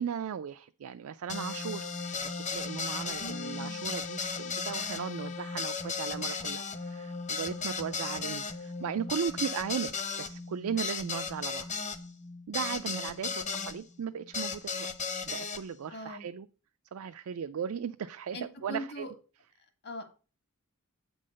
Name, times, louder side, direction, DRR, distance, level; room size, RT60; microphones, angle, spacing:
voice 1, 0.0-11.7 12.5-16.5 16.9-19.1, right 7 dB, 75° right, 0.4 m, -37 dB
sound 1, 1.3-13.8 14.3-15.6, left 5 dB, 35° left, 0.8 m, -36 dB
voice 2, 3.2-4.0 12.7-13.9 15.9-16.3 18.3-19.1 19.8-20.0, left 1 dB, 50° left, 1.6 m, -42 dB
8.4 x 3.9 x 6.3 m
head